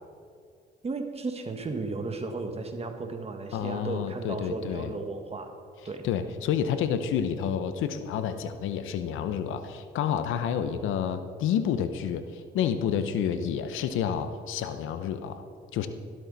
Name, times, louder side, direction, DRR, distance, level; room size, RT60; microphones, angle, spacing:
voice 1, 0.8-5.5 5.8-6.1, right 3 dB, 30° right, 6 dB, 1.4 m, -34 dB
voice 2, 3.5-4.9 6.0-15.4 15.7-15.9, left 8 dB, 85° left, 9 dB, 0.7 m, -29 dB
12.5 x 12.0 x 4.0 m, 2.2 s
cardioid pair, 90°, 20 cm